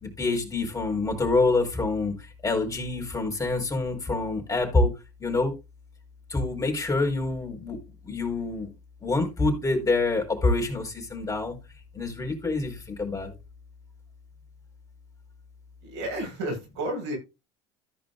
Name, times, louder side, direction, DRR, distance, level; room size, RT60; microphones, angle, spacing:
voice 1, 0.0-2.1 2.4-4.9 5.2-5.5 6.3-7.8 8.0-8.7 9.0-11.6 11.9-13.3, left 3 dB, 25° left, 4.8 m, -26 dB
voice 2, 15.8-17.2, right 1 dB, 85° right, 7.6 m, -31 dB
14.5 x 5.4 x 3.9 m
hypercardioid pair, 75°, 14 cm